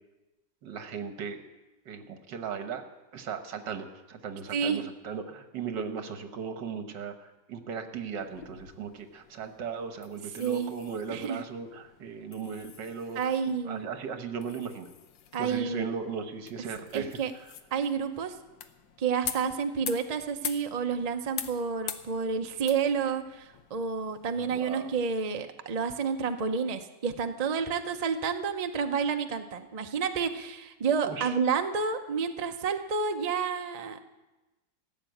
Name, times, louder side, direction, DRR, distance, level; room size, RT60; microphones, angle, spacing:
voice 1, 0.6-1.4 1.9-2.8 3.1-13.3 13.7-14.9 15.4-17.5 24.4-24.9 31.1-31.4, right 6 dB, 75° right, 7 dB, 1.8 m, -37 dB
voice 2, 4.5-4.8 10.4-10.7 11.1-11.4 13.2-13.9 15.3-15.9 16.9-17.3 17.7-18.3 19.0-34.0, right 6 dB, 50° right, 6 dB, 0.4 m, -30 dB
sound 1, 8.2-25.0, left 9 dB, 85° left, 1.6 m, -45 dB
15.0 x 7.6 x 9.1 m, 1.1 s
omnidirectional pair, 1.9 m